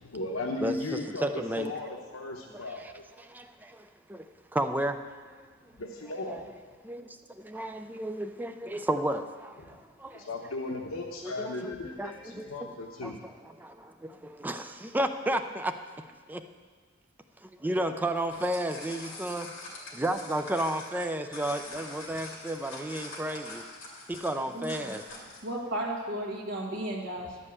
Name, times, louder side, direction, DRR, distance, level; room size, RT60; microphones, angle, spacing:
voice 1, 0.0-1.3 1.6-2.8 5.8-6.5 10.1-13.2, left 2 dB, 90° left, 1 dB, 0.9 m, -36 dB
voice 2, 0.6-1.7 2.5-4.3 4.5-5.5 6.0-6.6 6.8-10.3 11.2-16.4 17.4-19.5 19.9-23.6 24.1-25.0, right 1 dB, 10° right, 7 dB, 0.4 m, -33 dB
sound 1, 18.1-25.5, left 2 dB, 70° left, 2.5 m, -44 dB
voice 3, 24.5-24.9 25.4-27.4, right 1 dB, 60° right, -3 dB, 1.5 m, -34 dB
11.0 x 5.4 x 8.1 m, 1.5 s
head